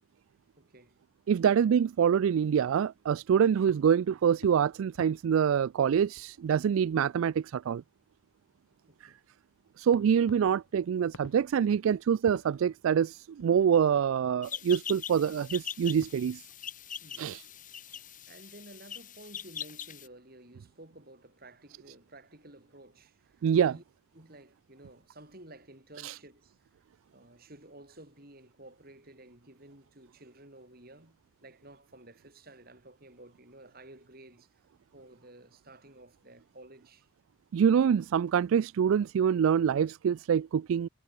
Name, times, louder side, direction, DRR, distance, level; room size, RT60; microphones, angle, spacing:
voice 1, 0.6-1.0 8.9-9.2 10.2-10.4 17.0-17.3 18.3-23.8 24.1-26.6 27.1-34.7 34.9-37.1, right 1 dB, 45° right, 5.0 m, -53 dB
voice 2, 1.3-7.8 9.0-9.1 9.8-16.4 17.2-17.4 23.4-23.7 26.0-26.1 37.5-40.9, right 8 dB, 75° right, 0.3 m, -25 dB
sound 1, 3.7-8.2 8.5-8.7 9.9-14.5 15.7-15.8 16.0-17.0, left 1 dB, 85° left, 4.4 m, -55 dB
sound 2, 14.4-20.1, left 8 dB, 40° left, 3.7 m, -42 dB
head